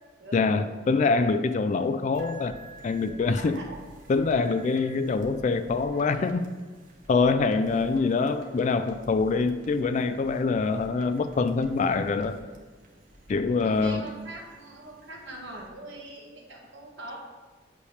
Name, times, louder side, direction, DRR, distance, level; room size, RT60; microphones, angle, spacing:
voice 1, 0.3-2.6 2.8-3.6 4.1-6.5 7.1-12.4 13.3-14.1, left 4 dB, 40° left, 11 dB, 0.3 m, -25 dB
sound 1, 2.1-15.7, right 1 dB, 45° right, 1.1 m, -51 dB
voice 2, 3.4-3.8 7.9-8.0 13.6-17.2, right 2 dB, 75° right, -2 dB, 1.4 m, -42 dB
8.3 x 3.3 x 6.3 m, 1.3 s
head